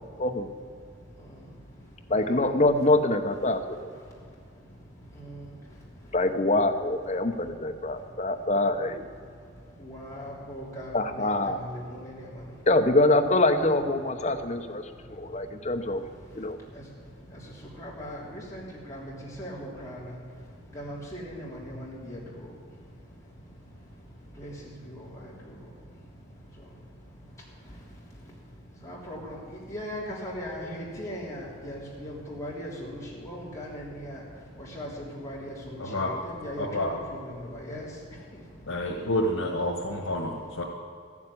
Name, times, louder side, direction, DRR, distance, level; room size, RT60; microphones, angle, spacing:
voice 1, 2.1-3.9 6.1-9.1 10.9-11.6 12.7-14.8 15.1-16.0 16.4-16.6, left 2 dB, 35° left, 6 dB, 0.9 m, -24 dB
voice 2, 9.8-11.3 11.6-12.2 17.8-18.6 18.9-19.1 19.4-20.0 20.7-22.2 24.4-24.5 24.9-25.0 28.8-29.4 29.7-34.2 34.7-34.9 35.2-35.8 36.2-37.9, equal, 15° left, -6 dB, 3.3 m, -38 dB
voice 3, 35.8-36.2 36.6-36.9 38.7-40.6, left 1 dB, 85° left, -2 dB, 1.7 m, -29 dB
14.5 x 7.3 x 9.9 m, 2.2 s
head